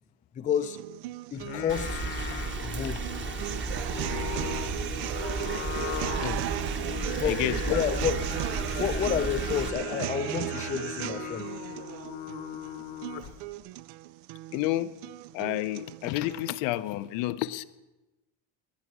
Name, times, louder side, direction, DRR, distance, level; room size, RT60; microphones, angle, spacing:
voice 1, 0.4-0.8 1.3-2.0 2.6-3.0 6.1-6.3 7.2-8.2 8.6-11.5, left 8 dB, 20° left, 0.4 m, -30 dB
sound 1, 0.5-16.5, right 16 dB, 90° right, 0.6 m, -37 dB
Singing, 1.3-13.5, left 11 dB, 70° left, 1.2 m, -39 dB
Rain, 1.7-9.7, right 4 dB, 25° right, 1.1 m, -34 dB
voice 2, 7.3-7.8 14.5-15.0 15.3-17.6, left 16 dB, 90° left, 0.8 m, -30 dB
18.5 x 11.5 x 6.1 m
cardioid pair, 155°, 43 cm